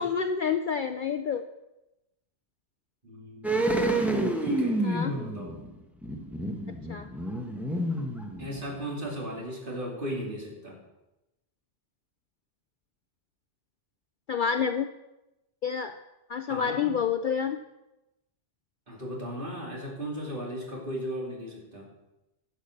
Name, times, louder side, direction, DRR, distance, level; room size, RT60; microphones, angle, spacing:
voice 1, 0.0-1.5 4.8-5.1 6.9-7.1 14.3-14.9 15.6-16.0 16.3-17.6, left 6 dB, 60° left, 8 dB, 0.6 m, -28 dB
voice 2, 3.0-3.7 4.4-5.7 8.4-10.8 16.4-16.9 18.9-21.9, equal, 45° right, -2 dB, 2.9 m, -36 dB
sound 1, 3.4-8.9 9.2-9.3, right 1 dB, ahead, 1.0 m, -29 dB
11.5 x 7.3 x 6.5 m, 0.95 s
omnidirectional pair, 1.2 m